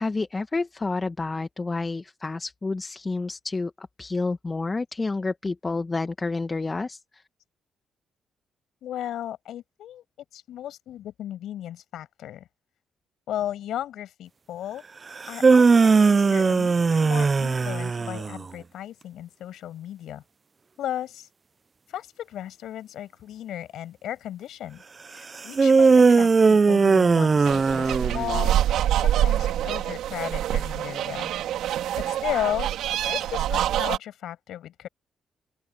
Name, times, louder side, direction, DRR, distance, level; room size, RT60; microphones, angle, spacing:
voice 1, 0.0-7.2, left 3 dB, 30° left, 1.8 m, -29 dB
voice 2, 8.8-10.0 10.3-12.5 13.3-14.8 15.3-20.2 20.8-21.3 21.9-24.8 25.1-28.6 28.9-31.3 31.9-32.7 33.1-34.9, left 11 dB, 80° left, 6.9 m, -35 dB
sound 1, 15.2-18.4 25.6-28.5, right 4 dB, 40° right, 0.4 m, -19 dB
sound 2, 27.5-34.0, right 12 dB, 85° right, 3.1 m, -25 dB
open air
supercardioid pair, 65°, 0 cm